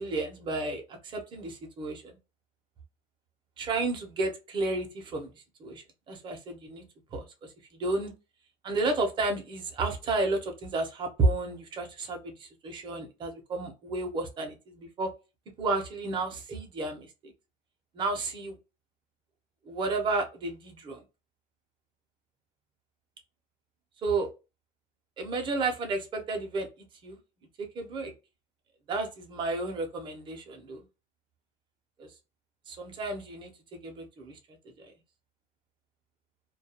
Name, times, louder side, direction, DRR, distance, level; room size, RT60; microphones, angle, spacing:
voice 1, 0.0-2.1 3.6-5.3 5.6-6.8 7.1-7.3 7.7-8.1 8.6-15.1 15.6-17.3 17.9-18.6 19.7-21.0 24.0-24.3 25.2-26.7 27.0-27.2 27.7-28.1 28.9-30.8 32.0-32.1 32.7-33.5 33.8-34.3 34.8-34.9, right 3 dB, 30° right, 3 dB, 0.7 m, -32 dB
2.3 x 2.3 x 2.7 m, 0.28 s
cardioid pair, 170°, 16 cm